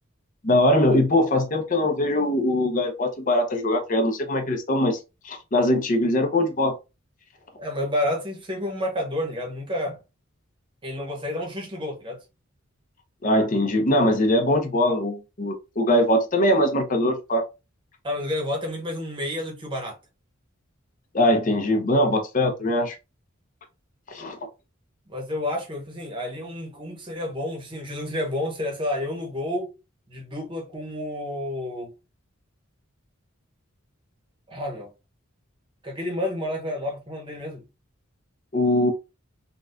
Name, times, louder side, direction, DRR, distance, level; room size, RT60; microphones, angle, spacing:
voice 1, 0.4-5.0 5.2-6.7 13.2-17.4 21.1-23.0 24.1-24.4 38.5-38.9, left 1 dB, 40° left, 0.8 m, -21 dB
voice 2, 7.6-10.0 10.8-12.2 18.0-20.0 25.1-29.7 30.1-31.9 34.5-34.9 35.8-37.6, left 1 dB, 25° right, 0.9 m, -30 dB
3.9 x 2.3 x 2.5 m
head